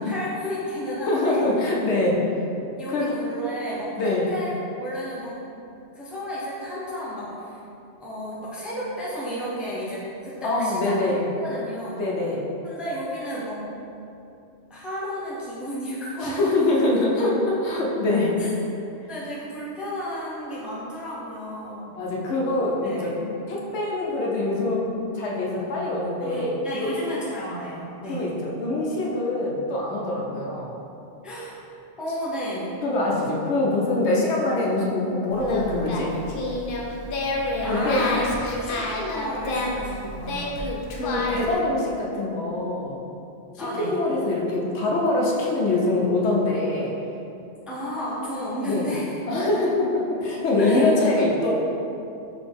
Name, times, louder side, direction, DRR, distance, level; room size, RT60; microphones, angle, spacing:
voice 1, 0.1-1.5 2.8-4.5 4.8-5.4 5.9-7.6 8.0-12.0 12.6-13.6 14.7-16.5 18.4-18.5 19.1-21.9 22.7-23.3 26.2-28.3 31.2-31.6 32.0-32.7 37.6-40.6 43.6-44.0 47.7-49.2 50.6-51.0, equal, ahead, -7 dB, 0.6 m, -32 dB
voice 2, 1.1-2.2 2.9-3.1 4.0-4.3 10.4-11.2 12.0-12.4 16.2-18.3 21.9-23.1 23.5-24.9 25.1-26.9 28.1-30.7 32.8-36.1 37.6-38.0 41.0-43.0 43.6-46.9 48.6-48.9 49.3-51.5, left 2 dB, 80° left, -3 dB, 1.0 m, -24 dB
Singing, 35.3-41.5, left 2 dB, 60° left, 0.6 m, -29 dB
4.0 x 3.3 x 3.4 m, 2.7 s
omnidirectional pair, 1.2 m